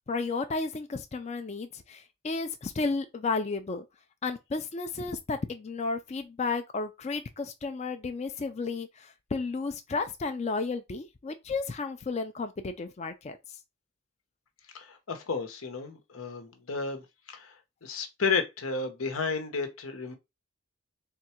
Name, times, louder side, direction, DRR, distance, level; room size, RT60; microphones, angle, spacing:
voice 1, 0.1-3.8 4.2-13.4, left 4 dB, 30° left, 0.4 m, -33 dB
voice 2, 14.7-20.1, left 4 dB, 85° left, 0.9 m, -32 dB
3.7 x 2.3 x 4.3 m
head